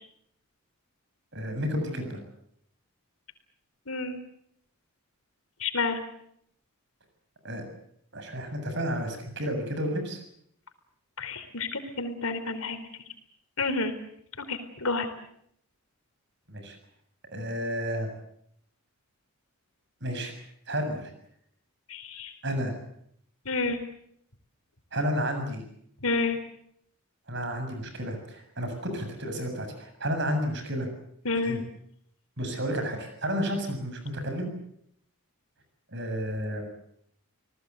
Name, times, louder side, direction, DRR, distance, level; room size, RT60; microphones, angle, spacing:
voice 1, 1.3-2.2 7.4-7.6 8.1-10.2 16.5-16.8 17.3-18.1 20.0-20.3 20.7-21.1 22.4-22.8 24.9-25.6 27.3-30.9 31.4-31.6 32.4-34.5 35.9-36.7, equal, 55° right, 6 dB, 7.2 m, -31 dB
voice 2, 3.9-4.2 5.6-6.0 11.2-12.8 13.6-13.9 14.4-15.1 21.9-22.3 23.5-23.8 26.0-26.4 31.2-31.6, left 3 dB, 75° left, 8 dB, 4.0 m, -29 dB
27.5 x 19.5 x 8.2 m, 0.71 s
head